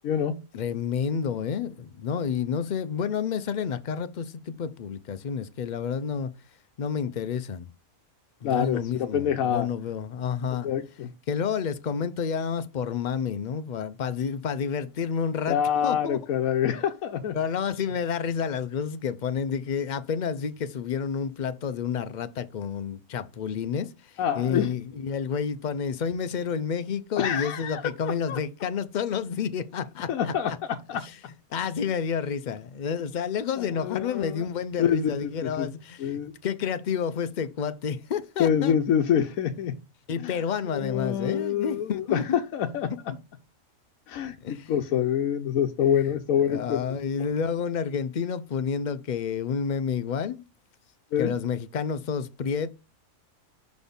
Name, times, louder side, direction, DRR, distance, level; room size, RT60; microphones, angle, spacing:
voice 1, 0.0-0.3 8.4-9.7 10.6-11.1 15.5-17.4 24.2-24.7 27.2-27.8 28.3-28.4 30.1-30.5 30.9-31.0 33.6-34.4 34.8-35.1 35.4-35.7 36.0-36.3 38.4-39.7 40.2-40.3 40.7-42.9 44.1-44.4 44.7-46.8 51.1-51.3, left 9 dB, 85° left, 1.1 m, -26 dB
voice 2, 0.5-6.3 6.8-7.7 8.4-10.7 11.3-16.2 17.3-30.6 31.0-31.2 31.5-38.8 40.1-42.4 44.4-44.7 46.4-50.4 51.2-52.7, left 6 dB, 65° left, 0.4 m, -30 dB
5.8 x 4.2 x 5.2 m
omnidirectional pair, 1.4 m